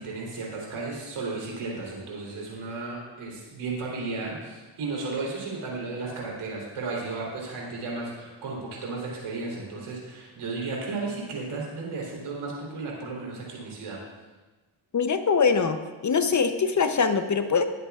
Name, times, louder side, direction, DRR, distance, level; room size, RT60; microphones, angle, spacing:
voice 1, 0.0-14.0, right 3 dB, 85° right, -3 dB, 3.7 m, -34 dB
voice 2, 14.9-15.8 16.0-17.6, left 5 dB, 35° left, 8 dB, 0.8 m, -23 dB
19.5 x 8.4 x 2.4 m, 1.2 s
cardioid pair, 95°, 48 cm